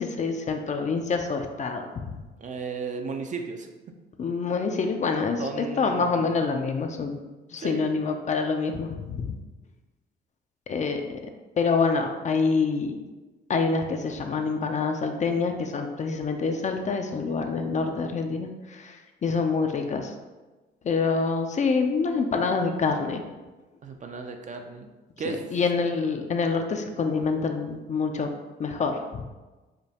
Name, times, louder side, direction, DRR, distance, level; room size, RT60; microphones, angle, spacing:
voice 1, 0.0-1.8 2.1-2.2 4.2-7.2 7.5-9.4 10.7-11.2 11.6-13.0 13.5-19.0 19.2-20.1 20.8-23.2 25.3-28.3 28.6-29.2, left 4 dB, 35° left, 5 dB, 0.4 m, -26 dB
voice 2, 2.4-3.7 5.4-6.4 7.6-7.9 23.8-24.9 25.2-25.5, right 4 dB, 40° right, 4 dB, 0.5 m, -35 dB
5.0 x 2.2 x 2.8 m, 1.2 s
cardioid pair, 90°, 20 cm